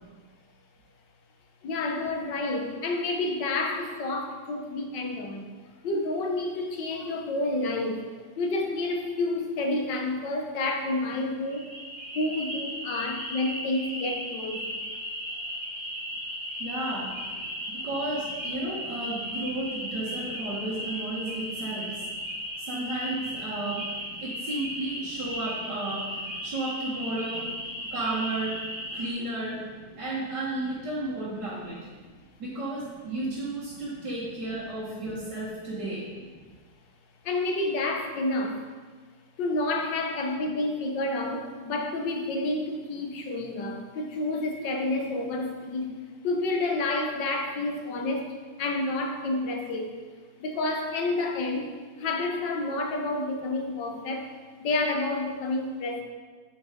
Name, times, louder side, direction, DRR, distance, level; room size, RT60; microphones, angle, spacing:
voice 1, 1.6-5.5 5.8-8.0 8.4-11.7 12.1-14.8 18.8-18.9 26.3-26.4 27.8-27.9 32.0-32.1 33.0-33.1 37.2-38.6 39.4-46.0 46.2-49.9 50.4-51.7 52.0-54.3 54.6-56.0, left 2 dB, 70° left, 3 dB, 1.7 m, -29 dB
sound 1, 11.5-29.1, equal, 25° right, 2.3 m, -36 dB
voice 2, 16.6-17.4 17.7-22.0 22.6-23.8 24.2-27.4 27.9-28.6 28.9-29.6 30.0-31.8 32.4-36.1, right 2 dB, 65° right, -8 dB, 2.2 m, -33 dB
8.1 x 6.6 x 5.0 m, 1.5 s
omnidirectional pair, 2.0 m